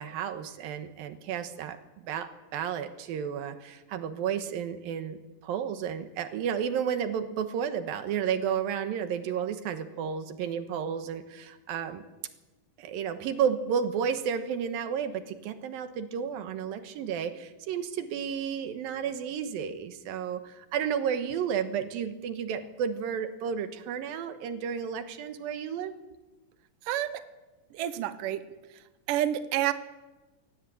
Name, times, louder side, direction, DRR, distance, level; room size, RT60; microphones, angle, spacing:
voice 1, 0.0-12.0 12.8-25.9, right 7 dB, 90° right, 9 dB, 3.1 m, -32 dB
voice 2, 26.9-27.2 27.7-28.4 29.1-29.7, right 12 dB, 75° right, 11 dB, 2.6 m, -28 dB
21.5 x 18.5 x 8.6 m, 1.1 s
omnidirectional pair, 4.0 m